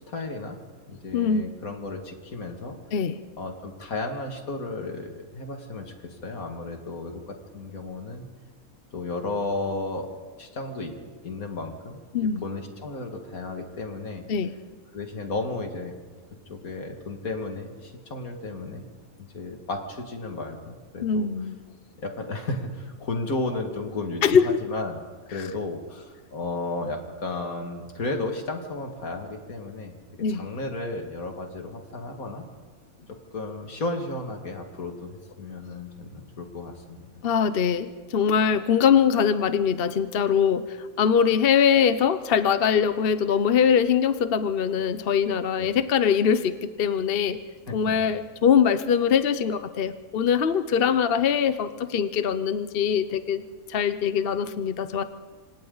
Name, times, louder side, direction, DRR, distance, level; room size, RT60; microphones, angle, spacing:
voice 1, 0.1-0.6 0.9-2.8 3.4-8.3 8.9-10.1 10.4-11.0 11.2-14.3 14.9-15.9 16.5-18.8 19.2-21.3 22.0-25.0 25.3-29.9 30.3-32.4 33.3-37.1 45.6-45.7 47.7-48.0, left 2 dB, 75° left, 3 dB, 2.6 m, -33 dB
voice 2, 1.1-1.5 2.9-3.2 12.1-12.4 14.3-14.5 21.0-21.5 24.2-24.6 25.3-25.4 30.2-30.4 37.2-47.4 47.7-53.4 53.7-55.0, left 7 dB, 50° left, 11 dB, 0.8 m, -22 dB
27.5 x 26.0 x 4.0 m, 1.4 s
omnidirectional pair, 1.5 m